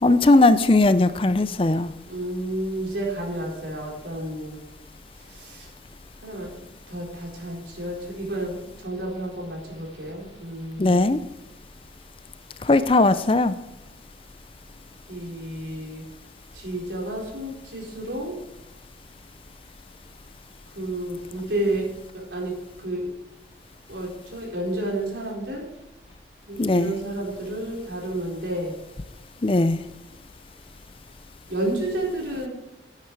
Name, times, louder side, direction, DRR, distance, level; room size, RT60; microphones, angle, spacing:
voice 1, 0.0-1.9 10.8-11.2 12.6-13.5 26.6-26.9 29.4-29.8, left 2 dB, 30° left, 13 dB, 0.5 m, -18 dB
voice 2, 2.0-4.6 5.2-5.7 6.2-6.5 6.9-11.1 15.1-16.0 16.5-18.4 20.7-23.1 23.9-25.7 26.5-28.8 31.5-32.5, right 1 dB, 85° right, -2 dB, 4.4 m, -31 dB
11.0 x 9.7 x 4.7 m, 1.0 s
head